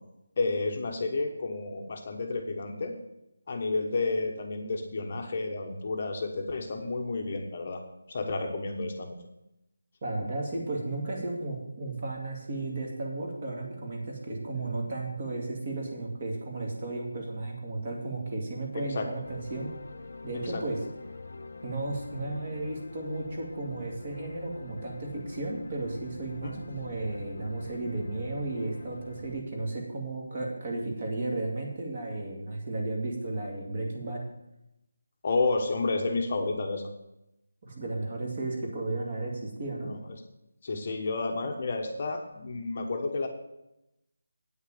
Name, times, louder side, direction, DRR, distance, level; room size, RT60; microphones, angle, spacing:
voice 1, 0.4-2.9 3.5-7.8 8.1-9.1 18.9-19.1 20.3-20.6 26.4-26.5 35.2-36.9 39.8-40.0 40.6-43.3, left 3 dB, 35° left, 3 dB, 1.1 m, -31 dB
voice 2, 10.0-19.7 20.2-20.8 21.6-34.2 37.6-39.9, right 2 dB, 30° right, 0 dB, 2.4 m, -34 dB
sound 1, 19.2-29.4, left 3 dB, 55° left, 1.0 m, -45 dB
9.1 x 6.4 x 8.6 m, 0.88 s
figure-of-eight pair, 175°, 0 cm